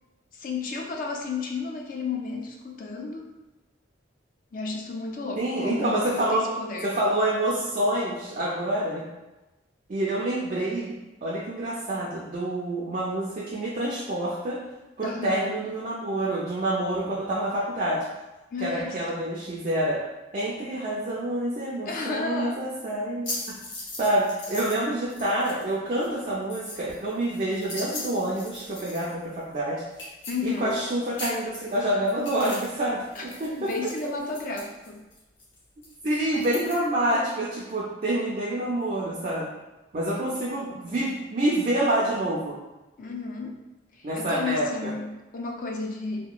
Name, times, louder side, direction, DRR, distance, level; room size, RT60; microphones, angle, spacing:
voice 1, 0.3-3.2 4.5-7.0 15.0-15.5 18.5-19.0 21.8-22.6 30.3-30.8 33.2-35.0 40.1-41.0 43.0-43.6 43.9-46.3, left 3 dB, 45° left, 2 dB, 0.3 m, -33 dB
voice 2, 5.4-6.5 6.8-9.1 9.9-10.9 11.2-14.6 15.0-18.1 18.6-20.0 20.3-23.3 24.0-29.8 30.4-33.0 33.4-33.7 36.0-39.5 39.9-42.6 44.0-44.9, right 1 dB, 40° right, -6 dB, 0.4 m, -27 dB
sound 1, 23.2-24.8 25.1-25.7 26.0-29.2 29.5-29.6 29.9-30.9 31.1-32.8 33.0-36.8, left 2 dB, 70° left, 0.8 m, -39 dB
2.8 x 2.2 x 2.3 m, 1.1 s
head